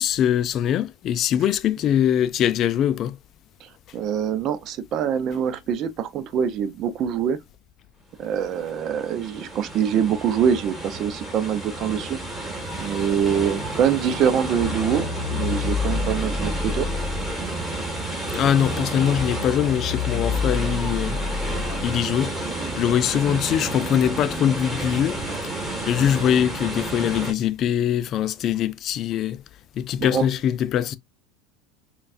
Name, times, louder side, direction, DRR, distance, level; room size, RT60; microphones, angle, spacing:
voice 1, 0.0-3.2 18.3-21.2 21.8-22.3 22.7-25.2 25.9-29.4 29.8-31.0, left 10 dB, 45° left, 0.4 m, -22 dB
voice 2, 3.6-7.4 8.2-12.2 12.8-16.9 30.0-30.3, right 8 dB, 50° right, 0.6 m, -24 dB
sound 1, 8.3-27.3, right 2 dB, 5° right, 1.7 m, -31 dB
sound 2, 14.6-21.9, left 6 dB, 30° left, 1.3 m, -29 dB
5.3 x 2.4 x 2.5 m
supercardioid pair, 110°, 0 cm